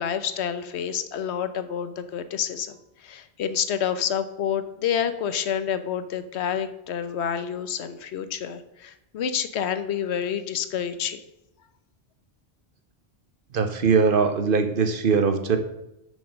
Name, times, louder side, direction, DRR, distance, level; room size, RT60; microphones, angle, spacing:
voice 1, 0.0-2.8 3.0-11.2, left 8 dB, 85° left, 11 dB, 1.0 m, -28 dB
voice 2, 13.5-15.6, right 5 dB, 55° right, 7 dB, 0.9 m, -21 dB
7.1 x 5.2 x 6.3 m, 0.86 s
omnidirectional pair, 1.1 m